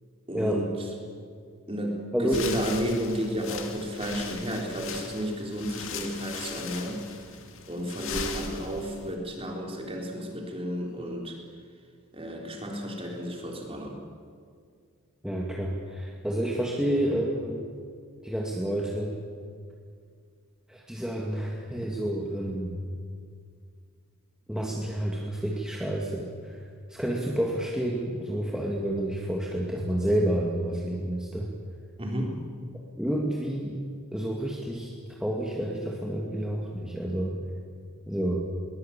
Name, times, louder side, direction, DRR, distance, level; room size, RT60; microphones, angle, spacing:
voice 1, 0.3-0.7 1.7-7.1 7.7-11.4 12.1-14.0 32.0-32.4, equal, 25° right, 1 dB, 3.7 m, -32 dB
sound 1, 2.3-9.1, left 5 dB, 60° left, 2.2 m, -39 dB
voice 2, 15.2-17.6 18.2-19.2 20.7-22.8 24.5-26.6 26.9-31.5 33.0-33.8 34.1-34.9 35.2-37.4 38.1-38.4, right 1 dB, 5° right, -2 dB, 2.0 m, -29 dB
22.0 x 20.0 x 8.7 m, 2.1 s
head